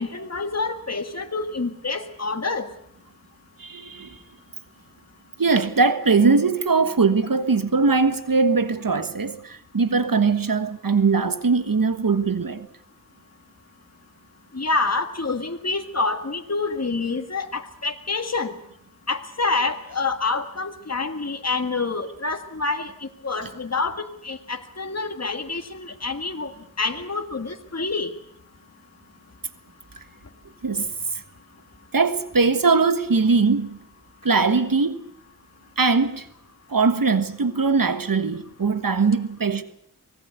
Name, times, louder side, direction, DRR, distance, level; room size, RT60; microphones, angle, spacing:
voice 1, 0.0-2.7 14.5-18.5 19.1-28.1, left 3 dB, 50° left, 1.8 m, -27 dB
voice 2, 3.6-4.2 5.4-12.7 30.6-30.9 31.9-33.8 34.2-35.0 35.8-36.3 36.7-39.6, right 4 dB, 80° right, 1.5 m, -21 dB
24.5 x 18.5 x 8.1 m
wide cardioid pair, 45°, 33 cm